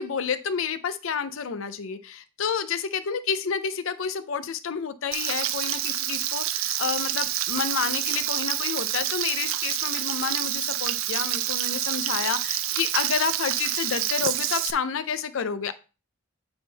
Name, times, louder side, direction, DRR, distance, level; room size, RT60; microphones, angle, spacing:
voice 1, 0.0-15.7, left 6 dB, 65° left, 13 dB, 0.5 m, -29 dB
Frying (food), 5.1-14.7, right 12 dB, 70° right, 0.5 m, -28 dB
8.8 x 3.6 x 3.9 m, 0.32 s
head